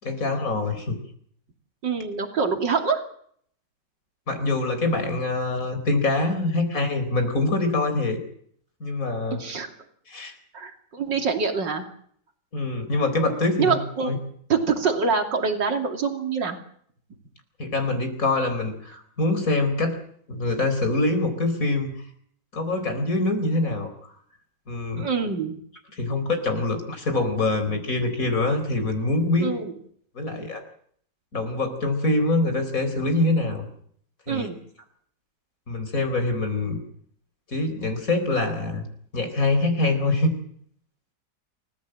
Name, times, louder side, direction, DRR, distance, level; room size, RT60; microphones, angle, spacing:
voice 1, 0.0-1.0 4.3-8.2 8.8-9.4 10.1-10.4 12.5-13.8 14.1-14.2 17.6-20.0 20.3-22.0 22.5-23.9 24.7-25.1 25.9-29.5 30.1-30.6 31.3-33.7 34.3-34.5 35.7-36.8 37.5-38.8 39.1-40.3, left 2 dB, 50° left, 8 dB, 4.6 m, -24 dB
voice 2, 1.8-3.0 9.3-9.7 10.5-11.9 13.6-14.1 14.5-16.6 25.0-25.6 29.4-29.7 34.3-34.6, right 5 dB, 85° right, 4 dB, 3.4 m, -25 dB
28.5 x 15.0 x 7.8 m, 0.63 s
omnidirectional pair, 1.9 m